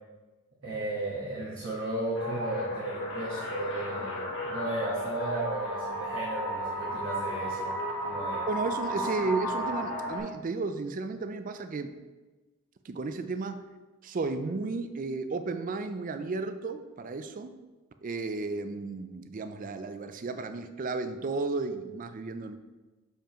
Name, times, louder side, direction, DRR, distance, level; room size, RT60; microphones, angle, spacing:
voice 1, 0.6-7.7 8.0-8.4, right 2 dB, 55° right, -8 dB, 1.5 m, -34 dB
sound 1, 2.1-10.2, equal, 60° left, 1.3 m, -34 dB
voice 2, 8.5-11.9 12.8-13.6 14.0-17.5 18.0-22.6, right 3 dB, 35° right, 9 dB, 0.3 m, -33 dB
6.8 x 5.1 x 3.0 m, 1.2 s
head